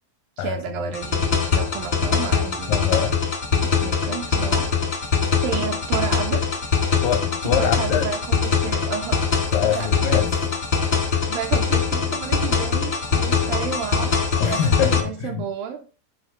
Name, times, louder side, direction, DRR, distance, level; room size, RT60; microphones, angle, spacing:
voice 1, 0.4-2.9 3.5-4.8 5.4-6.5 7.4-9.3 9.6-10.0 11.3-15.9, right 8 dB, 80° right, 2.1 m, -31 dB
sound 1, 0.9-15.0, left 5 dB, 65° left, 0.7 m, -22 dB
voice 2, 2.7-3.2 7.0-8.1 9.5-10.5 14.4-15.5, left 9 dB, 80° left, 1.9 m, -24 dB
7.9 x 5.0 x 5.3 m
omnidirectional pair, 4.7 m